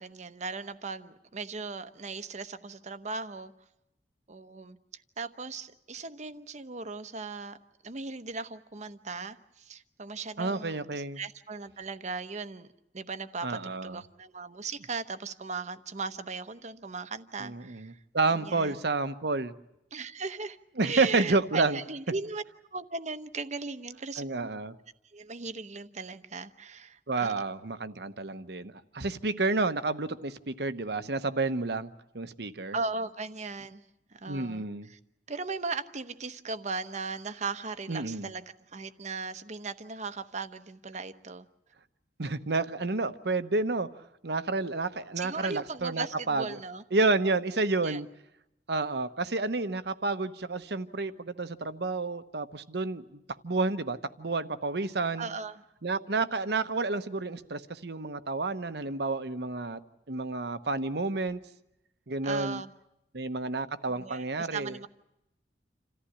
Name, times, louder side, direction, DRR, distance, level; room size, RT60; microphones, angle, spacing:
voice 1, 0.0-3.5 4.3-7.6 7.8-12.7 12.9-18.0 18.3-18.8 19.9-20.6 20.8-22.4 22.7-24.5 25.1-27.3 32.7-33.8 34.1-35.0 35.3-41.5 45.2-46.8 47.8-48.0 55.2-55.6 62.2-62.7 63.9-64.9, right 4 dB, 40° right, 11 dB, 0.9 m, -38 dB
voice 2, 10.4-11.2 13.4-14.0 17.4-19.5 20.8-21.8 24.2-24.7 27.1-31.9 32.1-32.7 34.3-34.9 37.9-38.3 42.2-43.9 44.2-46.4 46.9-48.1 48.7-55.3 55.8-59.8 60.1-61.4 62.1-62.6 63.1-64.8, right 3 dB, 65° right, 11 dB, 1.0 m, -30 dB
28.0 x 14.5 x 10.0 m, 0.86 s
head